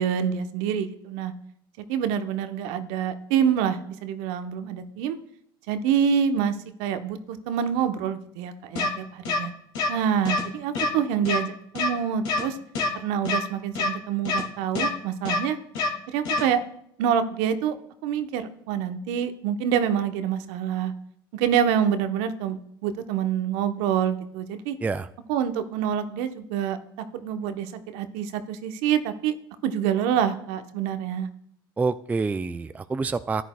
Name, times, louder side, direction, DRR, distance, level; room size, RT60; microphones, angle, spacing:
voice 1, 0.0-1.3 1.9-5.2 5.7-9.5 9.9-12.6 12.9-15.6 16.1-16.6 17.0-17.8 18.0-20.9 21.3-24.7 25.3-26.8 27.1-29.3 29.6-31.3, right 8 dB, 65° right, 9 dB, 0.9 m, -26 dB
sound 1, 8.8-8.9 9.3-9.4 9.8-9.9 10.3-10.4 10.7-10.9 11.3-11.4 11.8-11.9 12.3-12.4 12.8-12.9 13.3-13.4 13.8-13.9 14.3-14.4 14.8-14.9 15.3-15.4 15.8-15.9 16.3-16.4, left 3 dB, 70° left, 2.3 m, -25 dB
voice 2, 31.8-33.4, right 4 dB, 15° right, 12 dB, 0.4 m, -27 dB
14.0 x 10.0 x 2.3 m, 0.71 s
hypercardioid pair, 80°, 12 cm